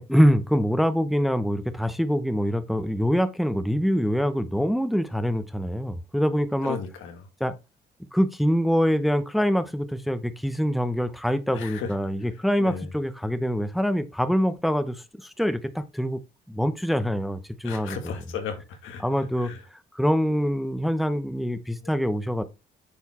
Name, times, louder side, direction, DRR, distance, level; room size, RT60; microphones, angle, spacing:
voice 1, 0.0-6.8 7.4-7.5 8.1-16.2 16.5-18.1 19.0-19.5 19.9-22.4, equal, ahead, 0.8 m, -24 dB
voice 2, 6.6-7.3 11.5-11.9 12.6-12.9 17.6-19.0 19.4-19.6, left 6 dB, 90° left, 1.9 m, -35 dB
8.3 x 4.3 x 4.3 m
cardioid pair, 90°, 20 cm